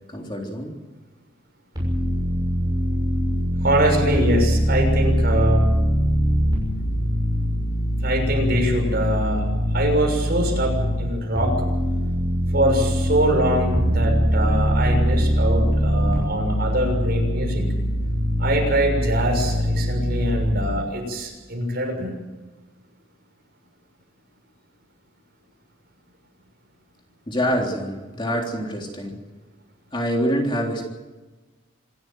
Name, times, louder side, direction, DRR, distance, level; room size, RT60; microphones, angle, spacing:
voice 1, 0.1-0.7 27.3-29.2 29.9-30.9, equal, 25° left, 1 dB, 3.5 m, -25 dB
sound 1, 1.8-10.9 11.3-20.5, equal, 20° right, 6.8 m, -22 dB
voice 2, 3.6-5.6 8.0-9.4 9.7-11.5 12.5-17.7 18.4-22.1, right 1 dB, 50° right, 2 dB, 6.6 m, -23 dB
26.5 x 13.0 x 9.2 m, 1.2 s
head